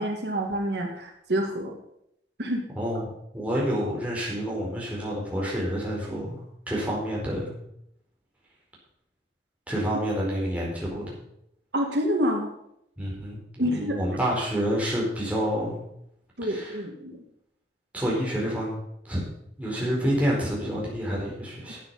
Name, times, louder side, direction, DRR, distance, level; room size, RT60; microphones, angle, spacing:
voice 1, 0.0-1.8 2.4-2.6 11.7-12.5 13.6-14.0 16.4-17.2, equal, 70° right, 2 dB, 1.7 m, -27 dB
voice 2, 2.7-7.5 9.7-11.0 13.0-15.8 16.4-16.8 17.9-18.8 19.0-19.2 19.6-21.8, equal, 10° right, -4 dB, 4.6 m, -28 dB
12.0 x 8.7 x 5.5 m, 0.76 s
head